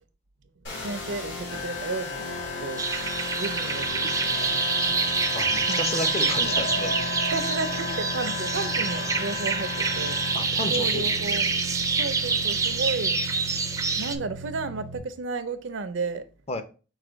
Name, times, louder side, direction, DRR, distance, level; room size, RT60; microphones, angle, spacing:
sound 1, 0.6-15.0, equal, 70° left, 1.5 m, -37 dB
voice 1, 0.7-2.2 2.6-2.9 3.4-4.7 5.7-6.6 7.3-10.2 10.7-11.5 11.9-13.2 14.0-16.2, right 3 dB, 70° right, 0.5 m, -33 dB
sound 2, 1.5-10.3, left 4 dB, 85° left, 1.5 m, -35 dB
sound 3, 2.8-14.2, right 4 dB, 15° right, 0.4 m, -27 dB
voice 2, 5.3-7.2 10.3-11.6 16.5-16.6, left 2 dB, 35° left, 0.5 m, -32 dB
4.7 x 2.2 x 4.4 m
head